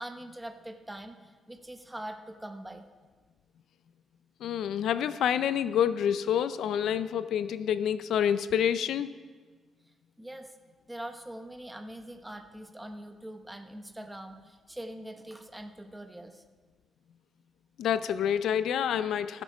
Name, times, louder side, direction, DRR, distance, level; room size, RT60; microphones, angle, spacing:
voice 1, 0.0-2.8 10.2-10.6 10.9-16.4, right 1 dB, 10° right, 5 dB, 0.9 m, -43 dB
voice 2, 4.4-9.1 17.8-19.4, left 9 dB, 80° left, 14 dB, 0.4 m, -28 dB
15.5 x 8.1 x 5.0 m, 1.5 s
cardioid pair, 125°, 0 cm